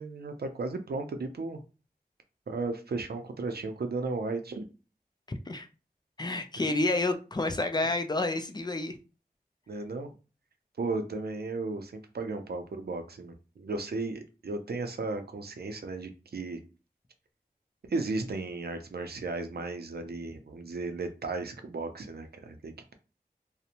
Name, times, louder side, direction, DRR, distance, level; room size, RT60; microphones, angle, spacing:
voice 1, 0.0-1.6 2.5-4.6 9.7-10.1 10.8-16.6 17.8-22.9, right 3 dB, 80° right, 7 dB, 0.4 m, -35 dB
voice 2, 5.3-5.7 6.2-9.0, left 2 dB, 25° left, 7 dB, 0.4 m, -29 dB
2.5 x 2.1 x 2.8 m, 0.33 s
wide cardioid pair, 60°, 16 cm